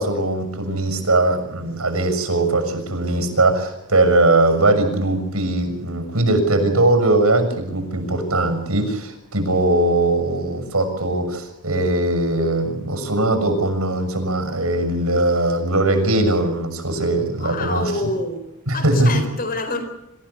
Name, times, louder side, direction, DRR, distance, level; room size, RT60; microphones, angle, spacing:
voice 1, 0.0-17.9 18.7-19.2, right 2 dB, 75° right, 7 dB, 6.4 m, -20 dB
voice 2, 17.4-19.8, left 3 dB, 40° left, 8 dB, 4.4 m, -27 dB
27.0 x 15.5 x 8.4 m, 0.85 s
head